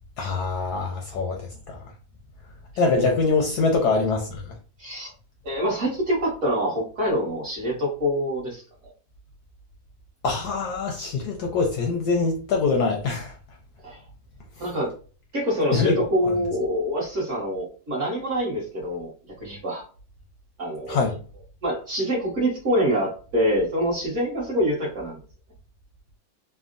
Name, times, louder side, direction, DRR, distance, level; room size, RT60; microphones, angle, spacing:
voice 1, 0.2-1.8 2.8-4.5 10.2-13.3 15.7-16.3 20.9-21.1, left 4 dB, 75° left, 0.9 m, -24 dB
voice 2, 4.8-5.1 5.4-8.6 13.8-14.0 14.6-14.9 15.3-19.1 19.4-19.8 20.6-21.1 21.6-25.2, equal, 50° right, 1.0 m, -25 dB
3.4 x 2.1 x 2.4 m
omnidirectional pair, 2.0 m